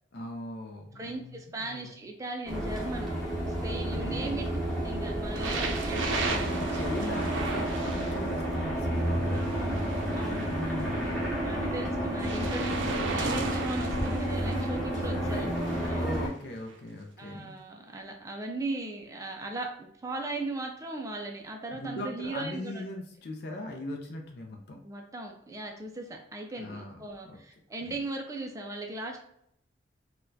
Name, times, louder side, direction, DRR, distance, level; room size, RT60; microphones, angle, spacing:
voice 1, 0.1-2.0 3.7-4.4 6.3-9.6 10.5-11.3 14.9-15.5 15.8-17.5 21.7-24.8 26.6-27.0 27.3-27.4 27.8-28.0, left 1 dB, 55° left, 1 dB, 0.5 m, -40 dB
voice 2, 1.0-3.1 3.6-4.5 4.8-6.6 9.3-10.9 11.4-16.1 17.2-22.8 24.8-29.2, right 2 dB, 15° right, 2 dB, 0.4 m, -38 dB
sound 1, 2.5-16.3, right 1 dB, 5° left, 0.9 m, -31 dB
sound 2, 5.3-8.5 9.4-11.2 12.2-14.8 15.5-15.9 16.7-16.8, right 3 dB, 80° right, 0.5 m, -36 dB
4.0 x 2.2 x 2.6 m, 0.70 s
head